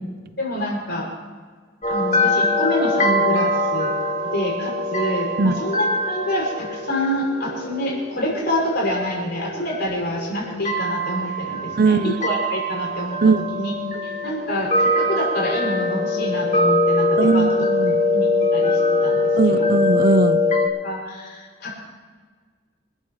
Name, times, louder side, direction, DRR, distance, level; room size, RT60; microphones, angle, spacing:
voice 1, 0.4-1.1 1.9-3.9 4.3-13.7 14.0-17.5 18.1-19.7 20.8-21.8, left 1 dB, 50° left, -2 dB, 6.2 m, -27 dB
sound 1, 1.8-20.7, left 2 dB, 35° left, 2.1 m, -23 dB
voice 2, 11.8-12.2 13.2-13.4 17.2-18.0 19.4-20.4, right 4 dB, 45° right, 12 dB, 0.6 m, -19 dB
28.0 x 13.5 x 3.2 m, 1.5 s
head